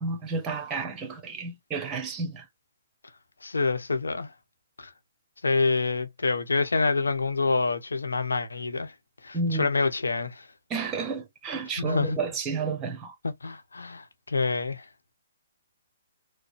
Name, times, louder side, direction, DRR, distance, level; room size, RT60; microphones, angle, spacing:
voice 1, 0.0-2.5 9.3-9.7 10.7-13.2, right 4 dB, 20° right, 1.1 m, -31 dB
voice 2, 3.4-4.3 4.8-4.9 5.4-8.9 9.2-10.5 11.8-12.2 13.4-14.8, left 3 dB, 80° left, 1.0 m, -27 dB
4.6 x 2.2 x 3.2 m
figure-of-eight pair, 135°, 0 cm